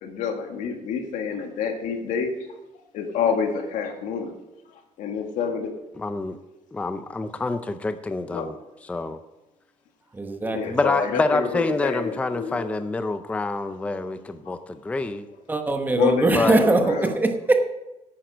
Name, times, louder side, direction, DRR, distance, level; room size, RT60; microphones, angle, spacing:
voice 1, 0.0-2.3 2.9-4.3 5.0-5.7 8.3-8.5 10.5-12.8 14.4-14.6 15.9-17.2, left 6 dB, 90° left, 5 dB, 1.7 m, -28 dB
voice 2, 6.0-6.4 6.7-8.6 8.9-9.2 10.7-15.2 16.3-16.6, left 3 dB, 10° left, 10 dB, 0.5 m, -27 dB
voice 3, 10.1-10.6 15.5-17.7, right 2 dB, 15° right, 5 dB, 1.0 m, -21 dB
10.5 x 9.1 x 5.1 m, 0.97 s
cardioid pair, 155°, 13 cm